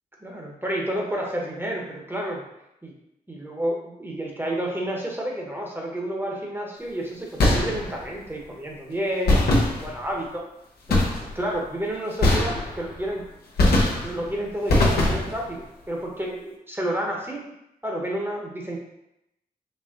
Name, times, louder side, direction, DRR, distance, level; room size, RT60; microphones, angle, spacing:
voice 1, 0.2-2.4 2.8-2.9 3.3-10.4 10.9-11.0 11.3-13.2 14.0-17.5 17.8-18.8, right 1 dB, 15° right, -1 dB, 0.9 m, -30 dB
sound 1, 7.4-8.1 9.3-10.2 10.9-11.5 12.2-13.0 13.6-14.3 14.7-15.5, left 2 dB, 90° left, 0.8 m, -21 dB
4.2 x 2.1 x 3.7 m, 0.84 s
cardioid pair, 55°, 16 cm